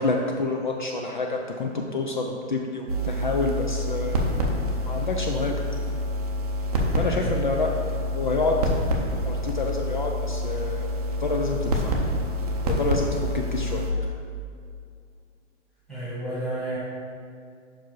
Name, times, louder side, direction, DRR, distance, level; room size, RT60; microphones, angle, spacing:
voice 1, 0.0-4.2 4.9-5.5 7.0-7.7 8.1-8.6 9.2-10.9 11.2-11.9 12.6-13.9, left 3 dB, 45° left, 1 dB, 0.4 m, -28 dB
sound 1, 2.9-13.9, equal, 35° right, 0.6 m, -27 dB
voice 2, 15.9-16.8, right 1 dB, ahead, -14 dB, 1.6 m, -31 dB
5.7 x 4.7 x 4.6 m, 2.3 s
hypercardioid pair, 175°, 36 cm